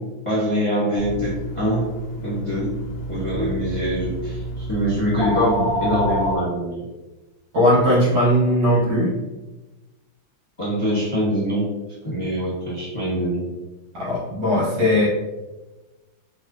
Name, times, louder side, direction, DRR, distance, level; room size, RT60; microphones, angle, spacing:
voice 1, 0.0-1.9 2.2-2.7 3.1-6.9 10.6-11.7 12.0-13.5, equal, 25° left, -8 dB, 0.8 m, -24 dB
sound 1, 1.0-6.4, equal, 80° left, 1.3 m, -28 dB
voice 2, 7.5-9.1 13.9-15.1, equal, 80° right, -8 dB, 2.5 m, -18 dB
4.8 x 2.3 x 2.7 m, 1.1 s
omnidirectional pair, 2.2 m